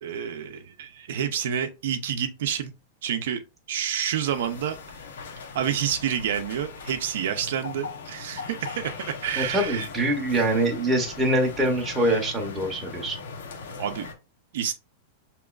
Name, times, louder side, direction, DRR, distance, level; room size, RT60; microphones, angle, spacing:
voice 1, 0.0-2.7 3.0-3.4 3.7-4.8 5.5-9.9 13.8-14.1 14.5-14.7, right 9 dB, 65° right, 0.5 m, -28 dB
sound 1, 4.3-14.1, left 5 dB, 70° left, 0.9 m, -40 dB
voice 2, 9.4-13.2, right 1 dB, 10° right, 0.7 m, -24 dB
6.1 x 2.9 x 2.3 m
supercardioid pair, 180°, 0 cm